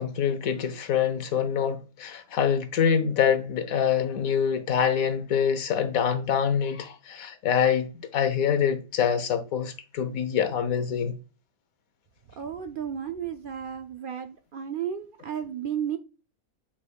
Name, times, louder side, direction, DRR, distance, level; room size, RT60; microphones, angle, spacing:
voice 1, 0.0-11.2, left 8 dB, 75° left, 1.3 m, -25 dB
voice 2, 12.3-16.0, right 8 dB, 75° right, 0.4 m, -33 dB
8.6 x 4.9 x 2.3 m
omnidirectional pair, 1.5 m